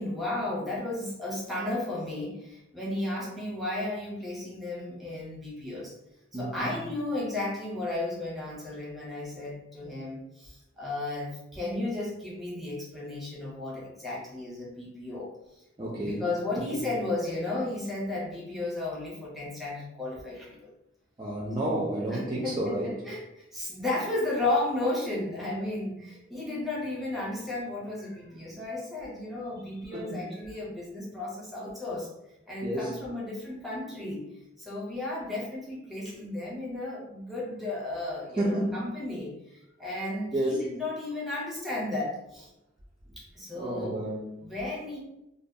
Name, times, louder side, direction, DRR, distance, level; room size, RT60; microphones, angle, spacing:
voice 1, 0.0-5.9 6.4-15.3 16.0-20.7 22.1-32.1 32.5-34.2 34.6-42.5 43.2-44.0 44.4-45.0, left 2 dB, ahead, -5 dB, 0.7 m, -34 dB
voice 2, 6.3-6.8 15.8-16.3 16.5-16.9 21.2-23.1 29.9-30.3 32.6-33.1 38.4-38.9 40.3-40.8 43.5-44.5, right 1 dB, 20° right, -4 dB, 0.3 m, -31 dB
2.3 x 2.2 x 2.6 m, 0.89 s
head